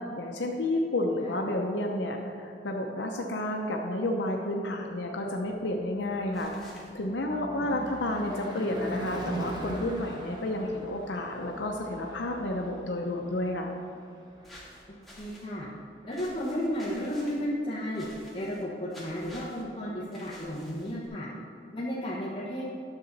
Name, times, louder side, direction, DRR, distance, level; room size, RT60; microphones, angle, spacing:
voice 1, 0.0-13.8, left 1 dB, 85° left, 1 dB, 0.7 m, -31 dB
Car passing by / Truck / Engine, 5.2-15.4, right 1 dB, 25° right, 1.2 m, -41 dB
sound 1, 6.3-6.9 14.4-15.5 16.1-17.4 17.9-18.6 18.9-19.6 20.1-21.1, left 1 dB, ahead, 1.9 m, -50 dB
voice 2, 15.2-15.7 16.0-18.1 18.3-21.3 21.7-22.6, equal, 25° left, -8 dB, 1.2 m, -33 dB
10.5 x 6.8 x 4.1 m, 2.6 s
head